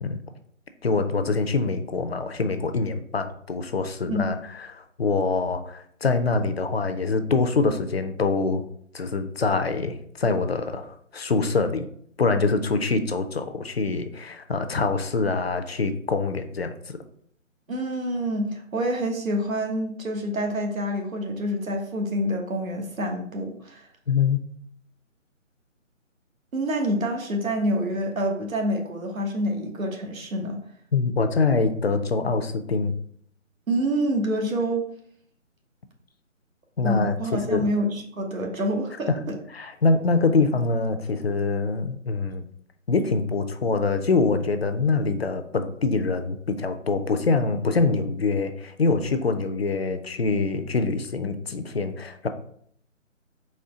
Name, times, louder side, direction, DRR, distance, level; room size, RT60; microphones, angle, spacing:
voice 1, 0.8-4.4 4.7-8.6 8.9-11.9 12.2-16.7 24.1-24.4 30.9-32.9 36.8-37.7 39.1-39.2 39.5-42.4 42.9-52.3, left 4 dB, 50° left, 8 dB, 0.5 m, -24 dB
voice 2, 17.7-23.9 26.5-30.6 33.7-34.9 36.8-39.3, equal, 90° right, 2 dB, 1.3 m, -27 dB
4.3 x 3.1 x 3.7 m, 0.63 s
figure-of-eight pair, 165°, 39 cm